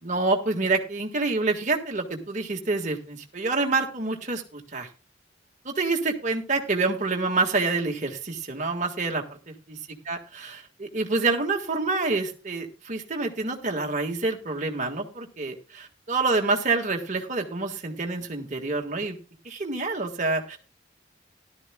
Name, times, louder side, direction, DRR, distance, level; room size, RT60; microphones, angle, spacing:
voice 1, 0.0-4.9 5.6-9.8 10.0-19.2 19.4-20.6, right 3 dB, 40° right, 2 dB, 1.7 m, -27 dB
17.0 x 12.0 x 2.3 m, 0.31 s
head